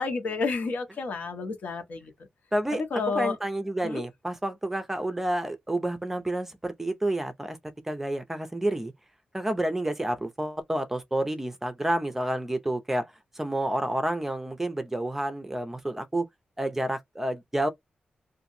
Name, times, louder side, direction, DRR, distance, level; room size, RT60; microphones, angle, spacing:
voice 1, 0.0-2.1 2.9-3.3 3.8-4.0, left 4 dB, 70° left, 1.1 m, -30 dB
voice 2, 2.5-7.6 7.8-8.9 9.3-16.3 16.6-17.7, right 1 dB, 10° right, 0.5 m, -29 dB
2.9 x 2.5 x 2.6 m
wide cardioid pair, 150°, 3 cm